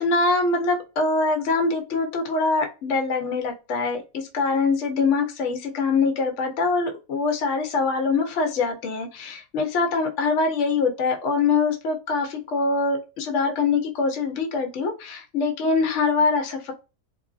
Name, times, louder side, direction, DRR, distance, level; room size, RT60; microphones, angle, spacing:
voice 1, 0.0-16.7, left 4 dB, 60° left, 0.9 m, -24 dB
3.0 x 2.5 x 2.4 m
omnidirectional pair, 1.6 m